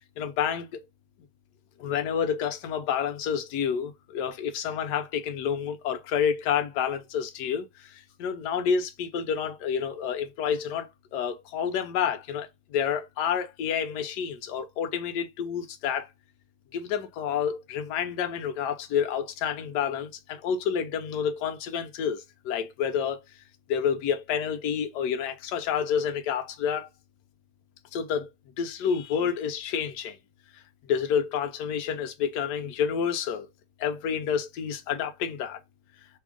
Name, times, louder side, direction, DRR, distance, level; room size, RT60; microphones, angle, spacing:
voice 1, 0.2-0.7 1.8-16.1 16.7-23.2 23.7-26.9 27.9-28.3 28.6-30.2 30.5-33.5 33.8-35.6, left 7 dB, 70° left, 1.2 m, -29 dB
3.5 x 2.4 x 3.6 m
omnidirectional pair, 2.0 m